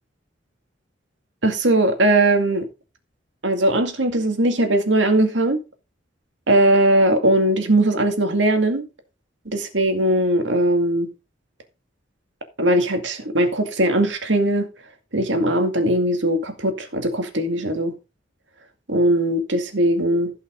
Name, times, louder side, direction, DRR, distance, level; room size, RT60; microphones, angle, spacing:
voice 1, 1.4-2.7 3.4-5.6 6.5-8.9 9.5-11.1 12.6-14.7 15.1-17.9 18.9-20.3, right 1 dB, 75° right, 2.2 m, -19 dB
15.5 x 5.7 x 3.8 m
head